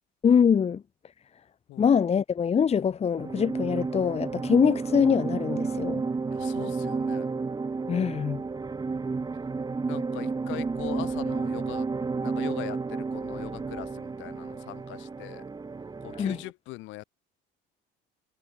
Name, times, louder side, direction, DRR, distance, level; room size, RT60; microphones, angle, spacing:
voice 1, 0.2-0.8 1.8-6.0 7.9-8.4 16.1-16.4, left 7 dB, 30° left, 1.4 m, -23 dB
sound 1, 3.2-16.5, right 4 dB, 20° right, 2.7 m, -31 dB
voice 2, 6.3-7.4 9.9-11.9 12.2-15.4 16.0-17.0, left 20 dB, 75° left, 6.8 m, -41 dB
cardioid pair, 110°, 20 cm